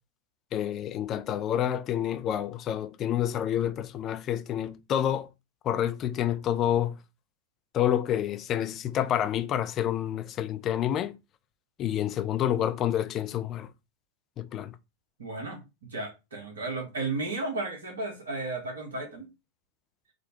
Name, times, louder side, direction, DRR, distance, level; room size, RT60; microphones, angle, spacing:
voice 1, 0.5-5.3 5.6-6.9 7.7-11.2 11.8-13.7 14.4-14.7, left 10 dB, 30° left, 0.3 m, -28 dB
voice 2, 15.2-19.3, right 3 dB, 70° right, 1.2 m, -34 dB
3.7 x 2.1 x 2.6 m
figure-of-eight pair, 90°, 0 cm